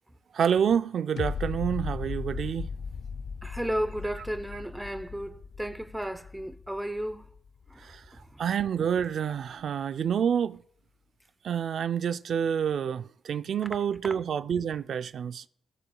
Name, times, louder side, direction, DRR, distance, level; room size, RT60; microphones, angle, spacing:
voice 1, 0.3-2.7 7.8-8.0 8.4-10.6 11.4-15.4, right 8 dB, 60° right, 0.4 m, -28 dB
sound 1, 1.2-8.2 8.7-8.8, left 5 dB, 60° left, 0.5 m, -37 dB
voice 2, 3.4-7.3 7.7-7.9 8.2-8.4, equal, 5° right, 0.7 m, -34 dB
18.0 x 6.9 x 2.3 m
wide cardioid pair, 140°, 0 cm